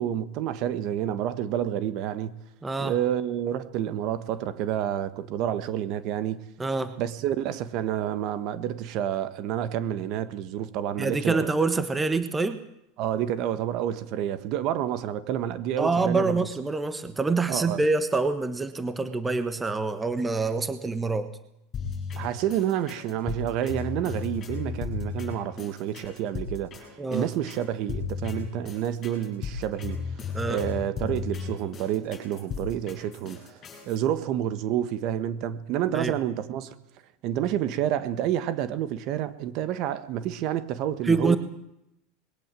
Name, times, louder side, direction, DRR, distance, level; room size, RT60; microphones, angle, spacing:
voice 1, 0.0-2.4 2.8-6.4 7.0-11.5 13.0-16.4 17.5-17.8 22.2-30.0 30.4-33.4 33.9-36.7 37.2-41.4, right 10 dB, 45° right, 1.5 m, -29 dB
voice 2, 2.6-2.9 6.6-7.0 11.0-12.6 15.8-21.3 27.0-27.3 30.3-30.6 35.9-36.1 41.0-41.4, right 3 dB, 10° right, 1.3 m, -26 dB
sound 1, 21.7-34.0, left 5 dB, 25° left, 7.9 m, -35 dB
21.5 x 18.0 x 7.7 m
supercardioid pair, 155°, 0 cm